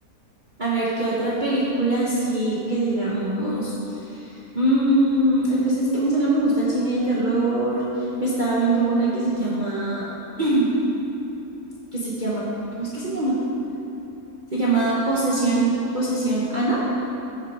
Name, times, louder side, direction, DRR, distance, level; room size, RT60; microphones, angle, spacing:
voice 1, 0.6-3.7 4.5-7.8 8.2-10.1 10.4-10.7 11.9-12.5 12.8-13.4 14.5-16.8, right 2 dB, 35° right, -7 dB, 1.3 m, -22 dB
13.0 x 5.6 x 4.9 m, 2.9 s
omnidirectional pair, 1.6 m